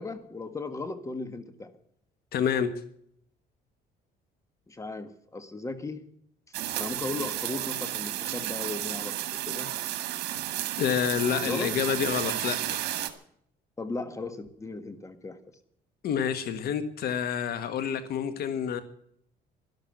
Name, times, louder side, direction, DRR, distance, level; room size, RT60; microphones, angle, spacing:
voice 1, 0.0-1.7 4.7-6.1 6.8-9.7 11.4-11.7 13.8-15.4, left 3 dB, 20° left, 11 dB, 1.7 m, -36 dB
voice 2, 2.3-2.7 10.8-12.8 16.0-18.8, left 8 dB, 65° left, 11 dB, 1.5 m, -28 dB
sound 1, 6.5-13.1, right 13 dB, 80° right, 1.8 m, -32 dB
12.5 x 12.0 x 7.9 m, 0.67 s
cardioid pair, 110°, 17 cm